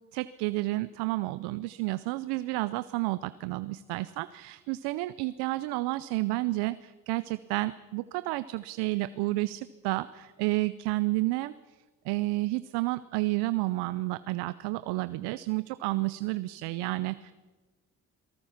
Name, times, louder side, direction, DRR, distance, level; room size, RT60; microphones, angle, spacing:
voice 1, 0.1-11.5 12.0-17.3, right 20 dB, 90° right, 16 dB, 0.6 m, -31 dB
28.0 x 19.0 x 5.8 m, 1.3 s
hypercardioid pair, 45°, 39 cm